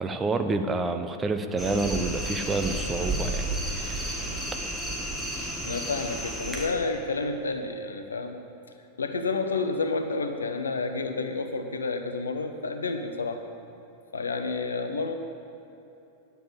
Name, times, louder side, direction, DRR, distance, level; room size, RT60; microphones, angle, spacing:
voice 1, 0.0-4.2, right 3 dB, 15° right, 7 dB, 0.6 m, -29 dB
sound 1, 1.6-6.7, right 1 dB, ahead, 1.9 m, -32 dB
voice 2, 5.6-8.4 9.0-13.4 14.1-15.1, left 3 dB, 75° left, 7 dB, 0.8 m, -30 dB
10.0 x 6.9 x 7.6 m, 2.8 s
figure-of-eight pair, 90°, 0 cm